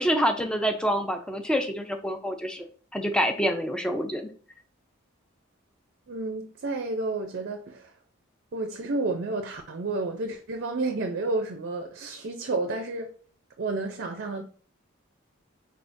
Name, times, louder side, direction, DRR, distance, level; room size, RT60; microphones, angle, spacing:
voice 1, 0.0-2.6 2.9-4.3, equal, 5° left, 0.4 m, -26 dB
voice 2, 6.1-7.9 8.5-13.1 13.6-14.4, right 3 dB, 55° right, 0.5 m, -31 dB
4.4 x 3.5 x 2.6 m
head